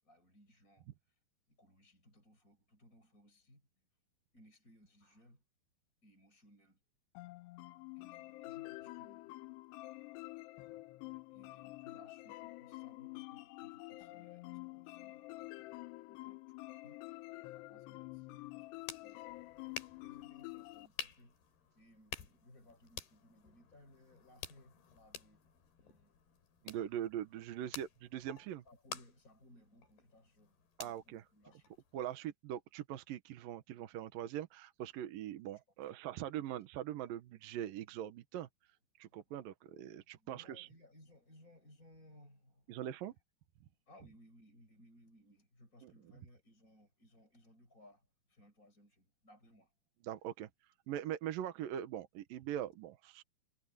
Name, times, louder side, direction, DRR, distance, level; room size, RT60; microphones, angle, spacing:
voice 1, 0.0-1.2 1.5-3.8 4.3-5.4 6.0-6.8 7.9-9.4 11.3-19.4 19.7-21.4 21.7-25.5 25.8-26.2 26.8-26.9 27.6-27.7 28.6-31.8 35.5-35.6 39.0-39.3 40.0-42.8 43.9-49.7, left 1 dB, 20° left, 6.7 m, -64 dB
sound 1, 7.1-20.9, left 21 dB, 85° left, 2.8 m, -48 dB
sound 2, 18.4-32.1, left 7 dB, 70° left, 4.8 m, -51 dB
voice 2, 26.6-28.6 30.8-31.2 31.9-38.5 39.0-40.7 42.7-43.1 45.8-45.9 50.0-50.5 50.9-53.2, right 11 dB, 70° right, 2.6 m, -42 dB
omnidirectional pair, 4.7 m